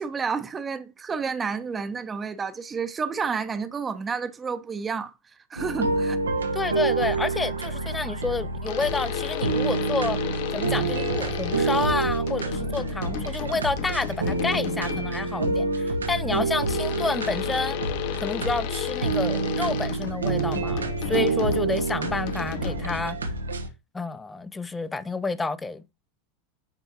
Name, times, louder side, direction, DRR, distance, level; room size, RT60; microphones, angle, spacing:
voice 1, 0.0-5.1 5.5-6.2 16.3-16.5 21.1-21.3, right 5 dB, 20° right, 0.9 m, -30 dB
sound 1, 5.6-23.7, right 3 dB, 85° right, 1.0 m, -28 dB
voice 2, 6.5-10.2 10.5-17.8 18.2-23.2 23.9-25.9, left 3 dB, 15° left, 0.6 m, -29 dB
sound 2, 8.7-15.3 16.7-23.3, left 12 dB, 60° left, 0.7 m, -34 dB
9.0 x 4.5 x 2.8 m
figure-of-eight pair, 90°, 0 cm